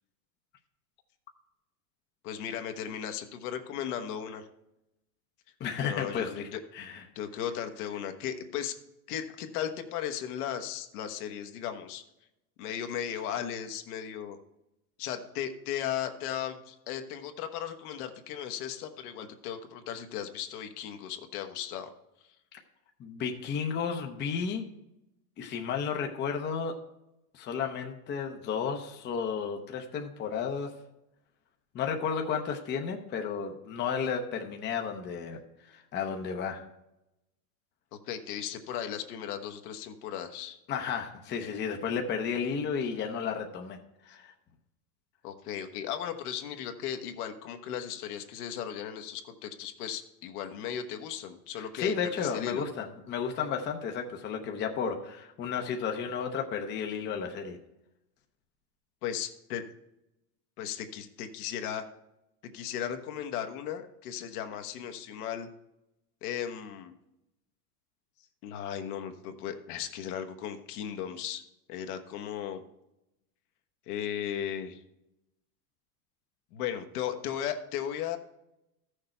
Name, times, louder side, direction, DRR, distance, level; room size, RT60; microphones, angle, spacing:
voice 1, 2.2-4.5 5.8-6.2 6.5-6.6 7.1-8.8 9.1-12.0 12.6-14.4 15.0-21.9 37.9-40.6 45.2-52.7 59.0-59.6 60.6-61.8 62.4-65.5 66.2-66.9 68.4-71.4 71.7-72.6 73.9-74.8 76.5-78.2, left 9 dB, 65° left, 6 dB, 1.3 m, -36 dB
voice 2, 5.6-7.0 23.0-24.7 25.4-26.8 27.3-30.7 31.7-36.7 40.7-43.8 44.0-44.3 51.6-57.6, left 6 dB, 20° left, 4 dB, 0.8 m, -33 dB
13.5 x 6.6 x 4.4 m, 0.88 s
supercardioid pair, 145°, 49 cm